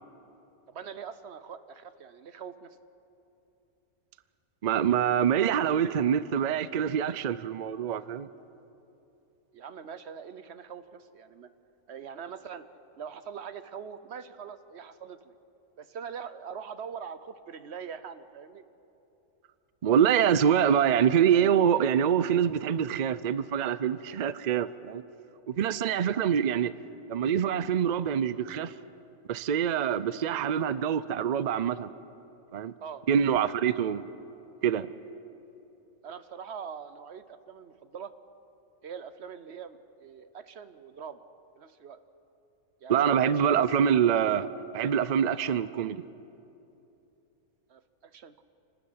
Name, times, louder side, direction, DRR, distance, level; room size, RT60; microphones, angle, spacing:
voice 1, 0.7-2.8 9.5-11.5 11.9-12.6 12.9-15.3 15.8-18.6 26.1-26.3 32.8-33.0 36.0-38.1 38.8-41.2 41.6-42.0 42.8-43.6 47.7-48.4, right 7 dB, 55° right, 12 dB, 1.0 m, -42 dB
voice 2, 4.6-8.3 19.8-25.0 25.5-26.7 27.1-28.7 29.3-31.9 32.5-32.7 33.1-34.1 34.6-34.9 42.9-44.5 44.7-46.0, right 8 dB, 75° right, 15 dB, 0.4 m, -25 dB
28.0 x 12.5 x 9.5 m, 2.9 s
omnidirectional pair, 1.5 m